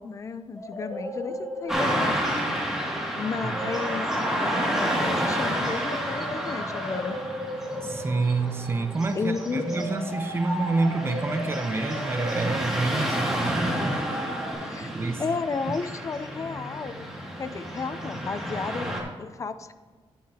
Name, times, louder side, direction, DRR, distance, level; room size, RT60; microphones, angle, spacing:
voice 1, 0.0-2.4 3.1-4.1 4.4-7.2 9.1-9.8 14.6-14.9 15.2-16.9 17.4-19.7, left 4 dB, 30° left, 11 dB, 0.5 m, -33 dB
sound 1, 0.5-14.5, equal, 15° left, 3.2 m, -36 dB
Car passing by / Traffic noise roadway noise, 1.7-19.0, equal, 5° right, 2.3 m, -30 dB
voice 2, 7.8-13.7 14.8-15.2 15.7-15.8, right 3 dB, 25° right, 8 dB, 0.7 m, -28 dB
11.5 x 9.3 x 2.8 m, 1.5 s
wide cardioid pair, 140°, 10 cm